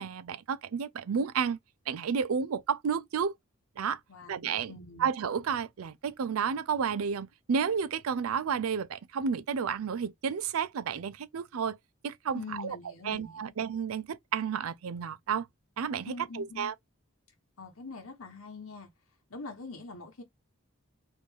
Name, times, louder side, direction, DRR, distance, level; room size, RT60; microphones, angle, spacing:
voice 1, 0.0-1.6 1.9-3.3 3.8-4.0 4.3-4.7 5.0-11.8 12.0-12.8 13.0-15.5 15.8-16.7, right 6 dB, 90° right, 0.4 m, -31 dB
voice 2, 4.1-5.1 12.3-13.5 16.1-16.7 17.6-18.9 19.3-20.2, left 3 dB, 85° left, 1.0 m, -44 dB
3.2 x 2.6 x 3.5 m
head